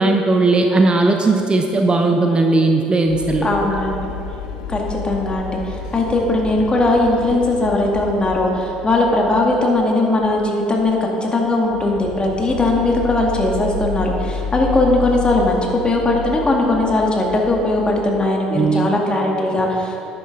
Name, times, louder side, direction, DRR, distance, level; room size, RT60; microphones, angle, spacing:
voice 1, 0.0-3.8 18.5-18.9, right 3 dB, 25° right, 4 dB, 0.8 m, -17 dB
sound 1, 3.1-9.8 10.1-10.4 10.8-10.9 11.4-18.1, left 5 dB, 75° left, 0.7 m, -30 dB
voice 2, 3.4-4.1 4.7-20.1, left 2 dB, 25° left, -1 dB, 2.1 m, -19 dB
10.5 x 10.0 x 3.8 m, 2.8 s
figure-of-eight pair, 60°, 4 cm